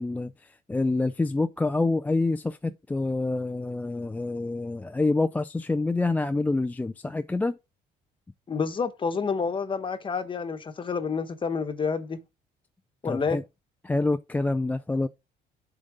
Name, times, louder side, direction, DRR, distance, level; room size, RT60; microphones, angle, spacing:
voice 1, 0.0-7.6 13.0-13.4 13.8-15.1, left 2 dB, 10° left, 0.3 m, -27 dB
voice 2, 8.5-12.2 13.0-13.4, left 5 dB, 30° left, 1.1 m, -29 dB
7.4 x 4.0 x 4.9 m
cardioid pair, 110°, 17 cm